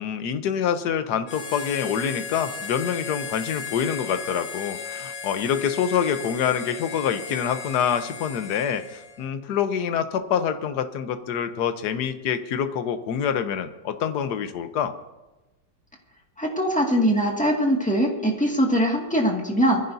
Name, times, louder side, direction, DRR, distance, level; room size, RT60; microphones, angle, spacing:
voice 1, 0.0-14.9, left 8 dB, 65° left, 9 dB, 1.3 m, -26 dB
Harmonica, 1.2-9.3, left 6 dB, 85° left, 2.1 m, -36 dB
voice 2, 16.4-19.8, equal, 5° left, 0 dB, 1.8 m, -22 dB
23.5 x 15.0 x 2.7 m, 1.1 s
omnidirectional pair, 2.1 m